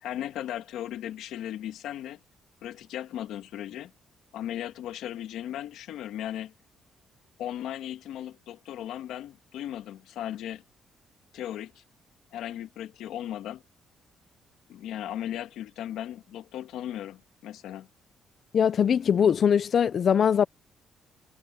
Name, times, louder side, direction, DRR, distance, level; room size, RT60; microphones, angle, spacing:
voice 1, 0.0-2.2 2.6-3.9 4.3-6.5 7.4-10.6 11.3-11.8 12.3-13.6 14.7-17.9, left 11 dB, 85° left, 1.7 m, -36 dB
voice 2, 18.5-20.5, left 8 dB, 45° left, 0.5 m, -21 dB
cardioid pair, 140°, 0 cm